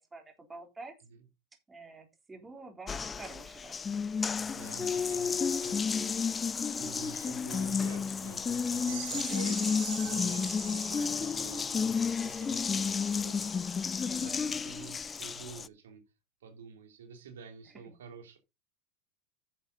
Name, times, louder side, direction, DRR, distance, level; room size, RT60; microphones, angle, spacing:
voice 1, 0.5-0.9 1.7-3.8 9.1-9.2 14.0-14.6 17.8-17.9, right 3 dB, 15° right, 3.8 m, -48 dB
Water tap faucet, 2.9-15.7, left 6 dB, 20° left, 0.5 m, -32 dB
voice 2, 4.5-9.7 10.0-13.7 14.0-16.0 16.4-18.4, right 6 dB, 90° right, 2.8 m, -49 dB
sound 1, 8.9-15.0, right 12 dB, 70° right, 2.3 m, -46 dB
10.5 x 7.2 x 3.9 m
hypercardioid pair, 105°, 0 cm